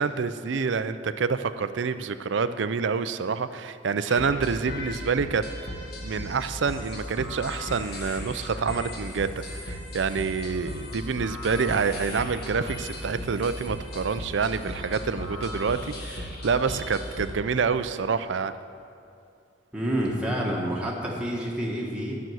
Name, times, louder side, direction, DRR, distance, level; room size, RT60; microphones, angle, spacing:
voice 1, 0.0-5.4 6.0-18.5, right 5 dB, 85° right, 12 dB, 0.5 m, -27 dB
sound 1, 4.1-17.3, left 1 dB, 60° left, 1.6 m, -37 dB
voice 2, 19.7-22.2, equal, 5° right, -3 dB, 1.6 m, -28 dB
11.5 x 6.1 x 7.8 m, 2.5 s
head